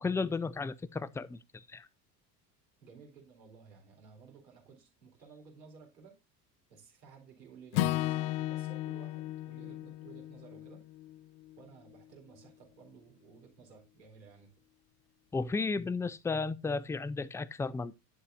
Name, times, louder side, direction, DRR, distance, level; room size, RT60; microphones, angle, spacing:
voice 1, 0.0-1.9 15.3-18.0, left 4 dB, 5° left, 0.4 m, -34 dB
voice 2, 2.8-6.2 6.7-10.8 11.6-14.5 16.0-16.1, right 5 dB, 80° right, 4.3 m, -55 dB
Acoustic guitar / Strum, 7.7-12.0, left 15 dB, 60° left, 0.8 m, -35 dB
10.5 x 7.4 x 2.6 m
hypercardioid pair, 70°, 49 cm